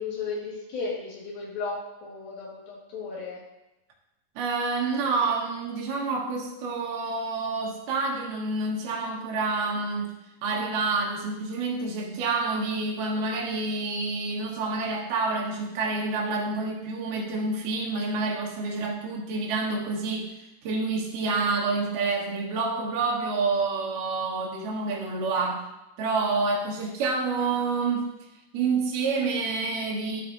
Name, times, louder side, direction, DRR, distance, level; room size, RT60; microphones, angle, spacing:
voice 1, 0.0-3.4, left 4 dB, 75° left, -3 dB, 3.3 m, -34 dB
voice 2, 4.4-10.1 10.4-20.3 20.6-25.6 26.0-28.1 28.5-30.2, right 3 dB, 70° right, -3 dB, 2.7 m, -28 dB
11.5 x 4.8 x 2.6 m, 0.96 s
omnidirectional pair, 4.3 m